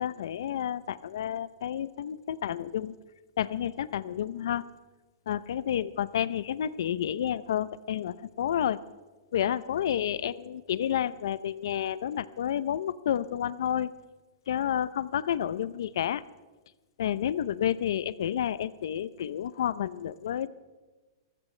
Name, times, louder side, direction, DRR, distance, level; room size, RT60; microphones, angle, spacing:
voice 1, 0.0-2.9 3.4-4.6 5.3-8.8 9.3-13.9 14.5-16.2 17.0-20.5, left 10 dB, 75° left, 17 dB, 0.6 m, -30 dB
24.5 x 14.5 x 3.3 m, 1.2 s
hypercardioid pair, 155°, 2 cm